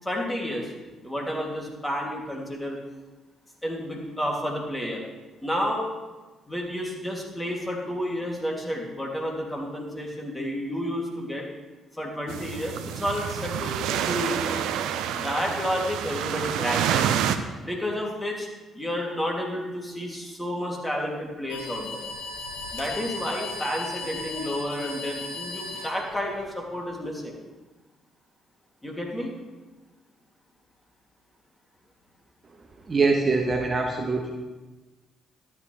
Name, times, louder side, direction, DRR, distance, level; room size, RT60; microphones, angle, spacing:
voice 1, 0.0-0.7 1.0-2.8 3.6-5.0 5.4-5.9 6.5-11.5 12.0-14.7 15.1-17.1 17.6-18.5 18.7-22.0 22.7-27.4 28.8-29.3, equal, 10° left, -1 dB, 2.8 m, -31 dB
sound 1, 12.3-17.4, right 9 dB, 70° right, 0.5 m, -28 dB
sound 2, 21.5-26.5, left 2 dB, 85° left, 2.0 m, -36 dB
voice 2, 32.9-34.3, right 3 dB, 35° right, 2 dB, 1.1 m, -23 dB
12.5 x 8.8 x 3.4 m, 1.2 s
hypercardioid pair, 50°, 0 cm